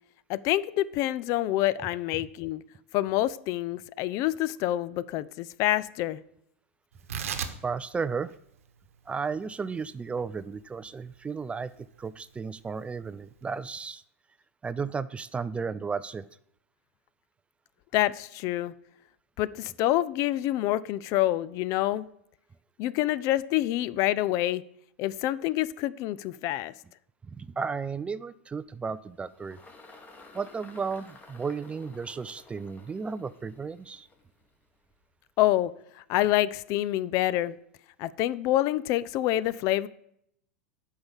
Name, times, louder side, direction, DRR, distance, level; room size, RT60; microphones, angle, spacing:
voice 1, 0.3-2.6 2.9-6.2 17.9-18.7 19.4-22.0 22.8-24.6 25.0-26.7 35.4-35.7 36.1-37.6 38.0-39.9, left 15 dB, 45° left, 19 dB, 0.4 m, -27 dB
Tearing, 6.9-13.7, right 7 dB, 80° right, 1.0 m, -41 dB
voice 2, 7.6-8.3 9.1-11.7 12.0-14.0 14.6-16.2 27.3-29.6 30.3-34.1, right 5 dB, 15° right, 16 dB, 0.3 m, -34 dB
Engine, 28.6-35.2, left 3 dB, 20° left, 1.9 m, -54 dB
8.7 x 5.5 x 7.2 m, 0.73 s
hypercardioid pair, 100°, 7 cm